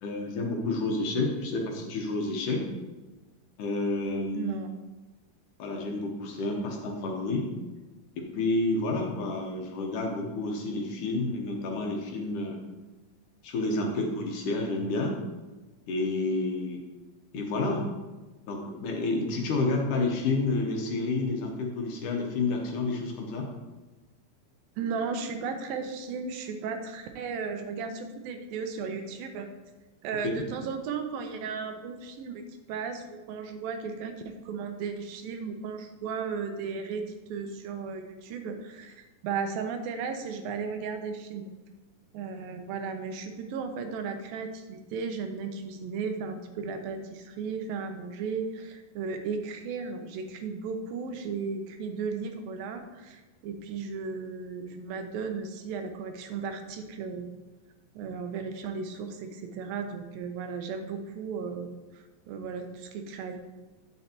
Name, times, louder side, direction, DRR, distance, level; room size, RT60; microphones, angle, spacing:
voice 1, 0.0-2.6 3.6-4.6 5.6-7.5 8.2-12.6 13.4-15.2 15.9-16.8 17.3-17.8 18.5-23.5 30.2-30.4, left 2 dB, 70° left, 0 dB, 2.4 m, -29 dB
voice 2, 4.3-4.7 17.3-17.4 24.8-29.5 30.0-32.4 32.7-34.1 34.4-37.0 37.3-41.5 42.1-57.3 58.0-63.4, right 5 dB, 85° right, 6 dB, 2.5 m, -35 dB
9.5 x 7.7 x 2.9 m, 1.2 s
omnidirectional pair, 4.2 m